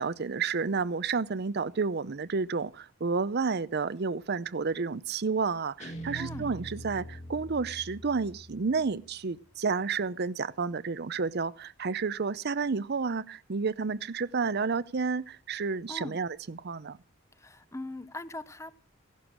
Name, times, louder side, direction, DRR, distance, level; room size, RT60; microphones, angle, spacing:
voice 1, 0.0-17.0, right 4 dB, 55° right, 0.6 m, -31 dB
Guitar, 5.8-9.0, right 1 dB, 35° left, 2.5 m, -43 dB
voice 2, 6.1-6.5 15.9-16.2 17.3-18.7, left 2 dB, 15° left, 0.8 m, -41 dB
16.0 x 11.5 x 6.1 m
head